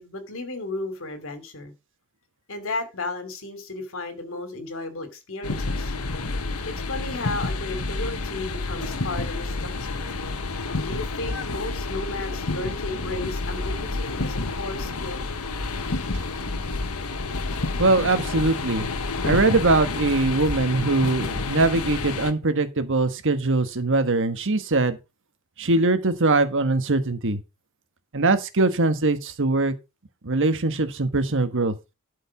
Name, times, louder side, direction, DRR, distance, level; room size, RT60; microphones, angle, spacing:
voice 1, 0.0-1.7 2.5-5.9 6.6-10.0 10.8-15.3, left 2 dB, 65° left, 2.8 m, -34 dB
sound 1, 5.4-22.3, left 3 dB, 80° left, 1.3 m, -29 dB
voice 2, 17.8-18.9 19.2-25.0 25.6-27.4 28.1-29.7 30.2-31.7, right 2 dB, 60° right, 1.4 m, -22 dB
12.5 x 5.2 x 5.9 m
head